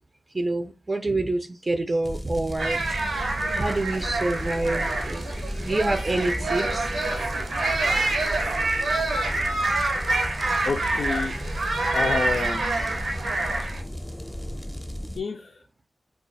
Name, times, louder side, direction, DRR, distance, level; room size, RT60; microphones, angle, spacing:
voice 1, 0.3-2.8 3.2-5.3 5.6-6.9, right 2 dB, 35° right, 0.4 m, -27 dB
sound 1, 2.0-15.2, equal, 5° left, 0.6 m, -35 dB
sound 2, 2.6-13.8, right 2 dB, 85° right, 0.6 m, -26 dB
voice 2, 10.6-11.3 11.9-12.8 13.6-13.7 15.2-15.5, left 4 dB, 80° left, 0.4 m, -28 dB
2.3 x 2.3 x 3.9 m
cardioid pair, 60°, 0 cm